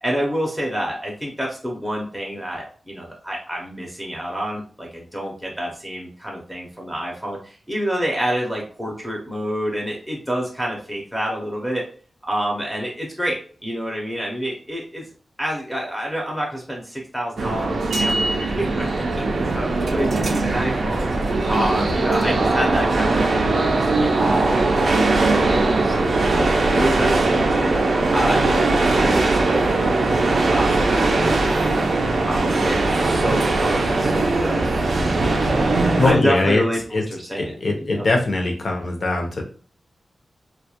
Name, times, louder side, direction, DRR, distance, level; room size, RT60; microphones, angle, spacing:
voice 1, 0.0-11.8 12.3-15.1 15.4-19.3 19.5-27.7 28.1-31.8 32.2-37.6 37.8-38.1, equal, ahead, -2 dB, 0.5 m, -28 dB
sound 1, 17.4-36.1, right 2 dB, 75° right, 0.4 m, -20 dB
voice 2, 36.0-36.6 36.9-37.0 37.4-39.4, left 2 dB, 55° left, 2 dB, 0.6 m, -21 dB
2.2 x 2.1 x 2.8 m, 0.42 s
wide cardioid pair, 135°, 0 cm